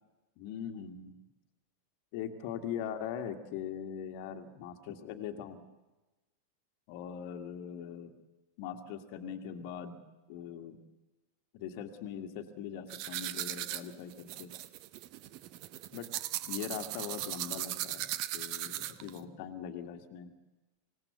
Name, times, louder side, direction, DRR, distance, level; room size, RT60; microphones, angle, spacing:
voice 1, 0.4-1.2 2.1-5.6 6.9-8.1 8.6-10.0 10.3-10.8 11.5-14.5 15.9-16.1 16.5-20.3, left 8 dB, 45° left, 4 dB, 1.8 m, -41 dB
sound 1, 12.9-19.2, right 13 dB, 45° right, 1.0 m, -38 dB
26.5 x 17.0 x 8.1 m, 1.1 s
figure-of-eight pair, 90°, 0 cm